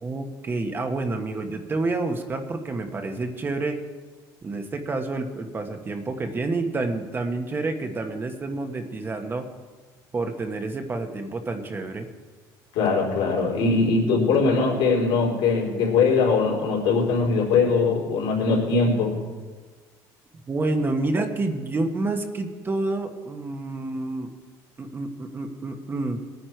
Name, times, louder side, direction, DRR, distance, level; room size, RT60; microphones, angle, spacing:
voice 1, 0.0-3.8 4.4-9.5 10.1-12.1 20.5-24.3 24.8-26.2, right 2 dB, 25° right, 5 dB, 1.3 m, -28 dB
voice 2, 12.7-19.2, left 4 dB, 70° left, -2 dB, 4.0 m, -21 dB
20.5 x 9.6 x 4.6 m, 1.4 s
cardioid pair, 110°, 9 cm